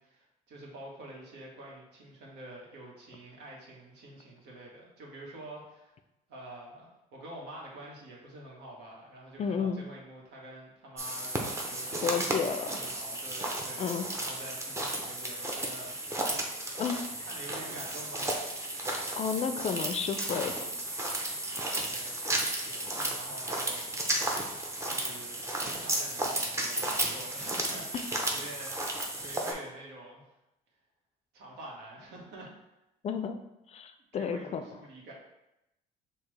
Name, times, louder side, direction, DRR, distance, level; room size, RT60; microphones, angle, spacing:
voice 1, 0.0-5.9 6.3-11.3 11.7-16.5 17.2-18.5 21.8-24.4 24.9-27.9 28.3-30.2 31.3-32.5 34.1-35.1, right 1 dB, 85° right, -2 dB, 1.3 m, -47 dB
voice 2, 9.4-9.8 12.0-12.8 13.8-14.1 16.7-17.1 19.2-20.7 33.0-33.4 33.7-34.6, left 6 dB, 40° left, 8 dB, 0.4 m, -32 dB
sound 1, 11.0-29.5, right 1 dB, 15° right, 0.6 m, -33 dB
5.9 x 2.4 x 3.2 m, 0.92 s
cardioid pair, 110°, 17 cm